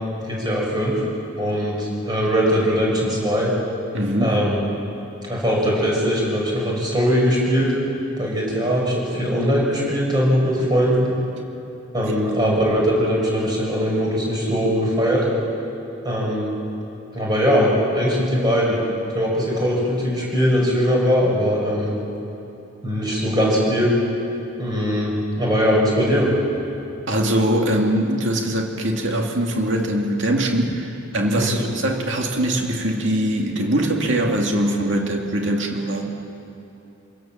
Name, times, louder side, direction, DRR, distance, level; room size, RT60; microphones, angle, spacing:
voice 1, 0.3-1.0 1.4-3.5 4.2-4.6 5.2-7.7 8.2-11.2 11.9-15.2 16.0-16.5 17.1-18.7 19.1-21.9 22.8-23.9 24.6-25.1 25.4-26.4 31.4-31.6, equal, 20° right, -3 dB, 5.9 m, -20 dB
voice 2, 3.9-4.4 12.1-12.2 27.1-36.1, right 1 dB, 60° right, 1 dB, 2.4 m, -22 dB
27.0 x 17.5 x 7.4 m, 2.8 s
head